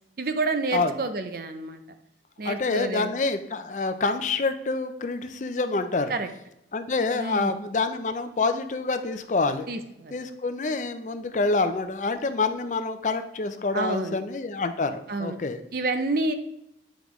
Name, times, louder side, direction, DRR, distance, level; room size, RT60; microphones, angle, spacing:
voice 1, 0.2-1.8 2.4-3.1 6.1-6.3 7.1-7.5 9.7-10.2 13.7-14.2 15.1-15.4 15.7-16.3, right 3 dB, 55° right, 8 dB, 0.6 m, -29 dB
voice 2, 2.4-6.1 6.7-9.7 10.1-15.6, left 3 dB, 45° left, 9 dB, 0.4 m, -27 dB
8.0 x 5.1 x 3.1 m, 0.80 s
head